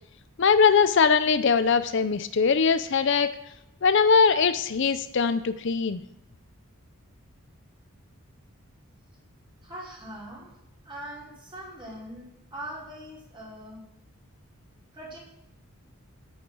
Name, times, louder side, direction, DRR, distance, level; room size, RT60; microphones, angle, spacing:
voice 1, 0.4-3.3 3.8-6.0, left 5 dB, 55° left, 12 dB, 0.5 m, -21 dB
voice 2, 9.6-10.5 10.8-13.8 14.9-15.2, right 1 dB, 20° right, -5 dB, 4.9 m, -41 dB
10.0 x 9.3 x 6.1 m, 0.82 s
head